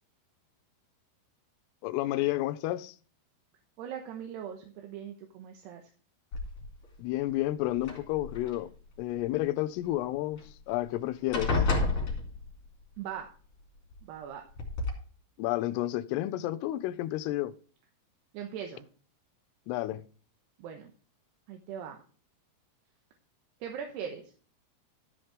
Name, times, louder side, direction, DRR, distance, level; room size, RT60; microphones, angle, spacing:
voice 1, 1.8-3.0 7.0-8.7 9.0-10.4 10.7-11.6 15.4-17.5 19.7-20.1, left 15 dB, 85° left, 2.6 m, -31 dB
voice 2, 3.8-5.8 13.0-13.3 14.0-14.4 18.3-18.9 20.6-20.9 21.5-22.0 23.6-24.3, right 8 dB, 80° right, 3.2 m, -40 dB
sound 1, 6.3-6.9 7.7-8.6 10.4-10.5 10.8-11.0 11.3-12.8 13.9-14.0 14.6-14.9, left 3 dB, 40° left, 3.3 m, -30 dB
13.5 x 5.8 x 5.0 m
omnidirectional pair, 4.9 m